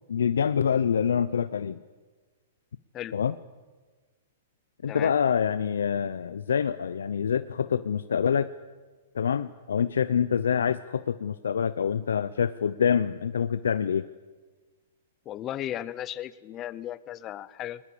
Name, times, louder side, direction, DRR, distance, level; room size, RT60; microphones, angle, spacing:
voice 1, 0.1-1.8 3.1-3.3 4.8-8.5 9.1-14.1, left 7 dB, 90° left, 14 dB, 0.7 m, -26 dB
voice 2, 15.3-17.8, left 12 dB, 25° left, 17 dB, 0.8 m, -35 dB
21.0 x 20.0 x 8.6 m, 1.3 s
hypercardioid pair, 140°, 0 cm